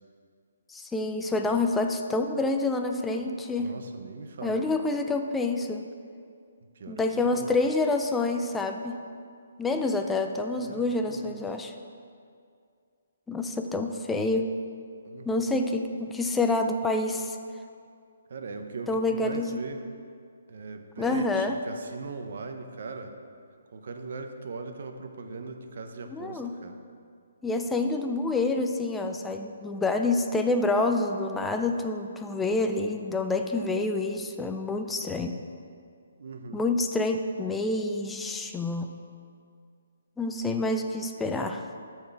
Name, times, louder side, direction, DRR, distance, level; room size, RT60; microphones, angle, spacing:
voice 1, 0.7-3.7 4.4-5.8 6.9-9.0 9.6-11.7 13.3-14.5 15.2-17.4 18.9-19.6 21.0-21.6 26.1-26.5 27.4-35.4 36.5-38.9 40.2-41.6, left 2 dB, 5° left, 5 dB, 0.3 m, -27 dB
voice 2, 3.5-4.6 6.8-7.5 10.6-11.4 15.0-15.4 18.3-19.8 20.5-23.1 23.7-26.8 36.2-36.7, right 4 dB, 60° right, 6 dB, 0.8 m, -40 dB
8.2 x 4.5 x 5.9 m, 2.3 s
hypercardioid pair, 160°, 0 cm